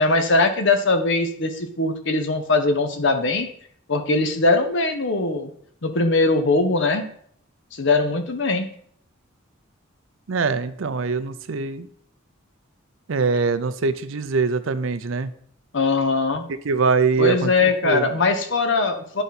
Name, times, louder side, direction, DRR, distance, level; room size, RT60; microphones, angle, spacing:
voice 1, 0.0-3.5 3.9-5.5 5.8-7.1 7.7-8.7 15.7-16.4 17.2-19.2, left 3 dB, 65° left, 7 dB, 0.9 m, -21 dB
voice 2, 10.3-11.9 13.1-15.3 16.6-18.1, right 4 dB, 70° right, 13 dB, 0.5 m, -23 dB
10.5 x 4.0 x 4.2 m, 0.63 s
head